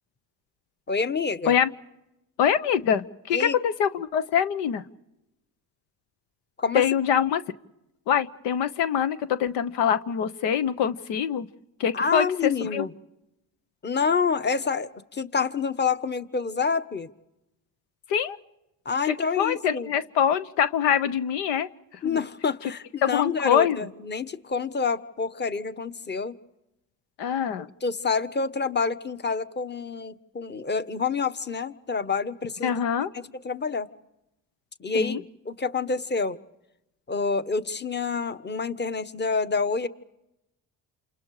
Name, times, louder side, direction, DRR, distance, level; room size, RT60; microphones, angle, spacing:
voice 1, 0.9-1.6 3.3-3.6 6.6-6.8 11.9-12.9 13.8-17.1 18.8-19.9 22.0-26.3 27.8-32.8 33.1-33.9 34.8-36.4 37.1-39.9, left 5 dB, 25° left, 12 dB, 1.3 m, -27 dB
voice 2, 2.4-4.8 6.7-7.4 8.1-11.5 11.8-12.9 18.1-18.4 19.1-21.7 22.0-22.2 23.0-23.9 27.2-27.7 32.6-33.1 34.9-35.2, left 8 dB, 80° left, 12 dB, 1.1 m, -24 dB
28.5 x 28.5 x 5.0 m, 0.90 s
supercardioid pair, 70°, 41 cm